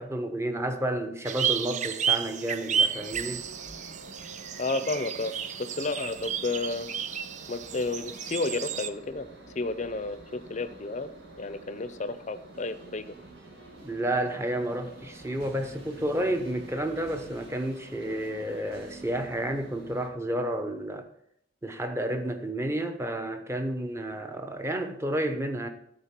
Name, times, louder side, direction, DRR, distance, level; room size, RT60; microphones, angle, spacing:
voice 1, 0.0-3.5 13.8-21.1 21.6-25.7, right 1 dB, 15° right, 0.9 m, -31 dB
sound 1, 1.2-8.9, right 7 dB, 40° right, 0.4 m, -32 dB
sound 2, 2.7-20.1, right 2 dB, 85° right, 2.1 m, -49 dB
voice 2, 4.6-6.9 7.5-9.3 9.6-11.1 11.4-13.1, left 3 dB, 40° left, 0.6 m, -32 dB
sound 3, 12.5-19.3, right 1 dB, 60° right, 2.4 m, -51 dB
13.0 x 4.5 x 5.9 m
head